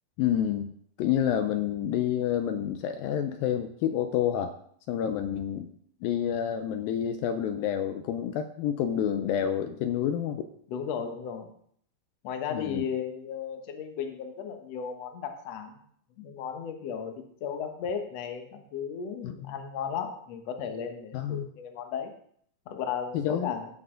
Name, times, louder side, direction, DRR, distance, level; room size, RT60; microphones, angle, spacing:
voice 1, 0.2-4.5 4.9-5.7 6.0-10.5 12.5-12.8 19.2-19.3 21.1-21.5 23.1-23.5, left 9 dB, 80° left, 7 dB, 2.3 m, -28 dB
voice 2, 10.7-11.5 12.2-15.7 16.2-22.1 22.7-23.7, left 7 dB, 60° left, 5 dB, 1.9 m, -35 dB
17.5 x 6.7 x 3.8 m, 0.64 s
omnidirectional pair, 4.3 m